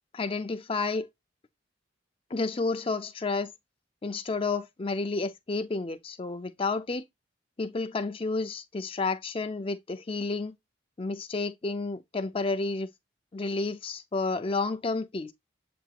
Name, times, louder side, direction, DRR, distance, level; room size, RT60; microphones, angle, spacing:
voice 1, 0.1-1.1 2.3-3.5 4.0-7.0 7.6-10.6 11.0-12.9 13.3-15.3, left 3 dB, 30° left, 0.5 m, -31 dB
7.8 x 2.9 x 2.4 m
head